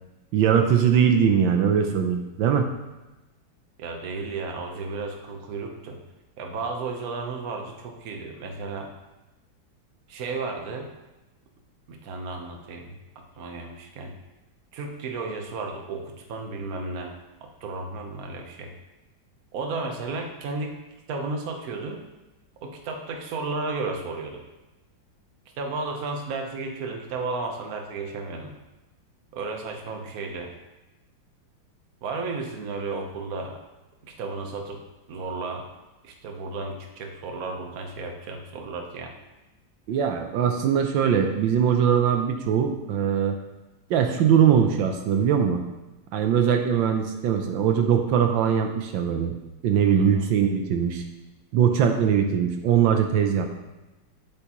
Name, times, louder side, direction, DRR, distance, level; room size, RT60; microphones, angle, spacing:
voice 1, 0.3-2.7 39.9-43.4 43.9-45.6 46.1-49.4 49.6-51.0 51.5-53.5, right 8 dB, 80° right, 5 dB, 1.4 m, -21 dB
voice 2, 3.8-6.0 6.4-8.9 10.1-10.9 11.9-13.0 13.4-14.2 14.7-18.7 19.5-20.8 21.1-22.1 22.6-24.4 25.6-28.5 29.3-30.5 32.0-33.6 34.0-34.8 35.1-35.7 36.0-39.1 50.0-50.3, right 3 dB, 55° right, 3 dB, 1.3 m, -33 dB
9.9 x 8.0 x 3.0 m, 1.1 s
omnidirectional pair, 2.1 m